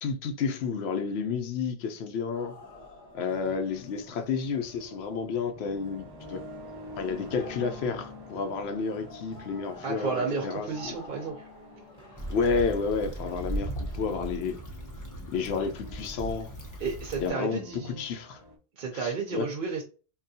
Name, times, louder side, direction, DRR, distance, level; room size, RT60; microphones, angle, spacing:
voice 1, 0.0-2.5 3.1-6.4 7.0-11.0 12.3-14.6 15.3-16.5 17.2-18.4 18.9-19.5, left 5 dB, 80° left, 0.8 m, -31 dB
sound 1, 2.3-17.2, left 2 dB, 40° left, 1.0 m, -51 dB
sound 2, 5.5-18.6, left 1 dB, 30° right, 0.5 m, -48 dB
voice 2, 9.8-11.5 16.8-18.0 18.8-19.8, right 5 dB, 60° right, 0.8 m, -32 dB
Stream / Traffic noise roadway noise / Trickle dribble, 12.2-17.3, right 1 dB, 20° left, 0.6 m, -37 dB
3.6 x 2.3 x 2.6 m
omnidirectional pair, 1.1 m